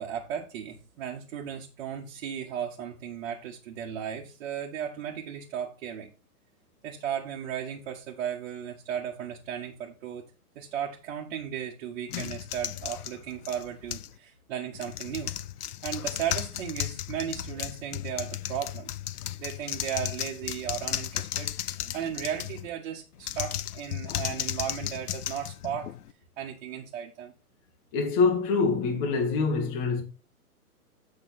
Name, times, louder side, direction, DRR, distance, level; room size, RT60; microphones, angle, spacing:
voice 1, 0.0-6.1 6.8-10.2 10.5-15.3 15.8-18.9 19.4-25.9 26.4-27.3, right 9 dB, 45° right, 1.6 m, -35 dB
sound 1, 12.1-14.2 14.7-22.7 23.2-26.1, left 12 dB, 70° left, 0.7 m, -35 dB
voice 2, 27.9-30.0, left 4 dB, 35° left, 1.5 m, -25 dB
7.6 x 6.3 x 4.3 m
hypercardioid pair, 145°, 47 cm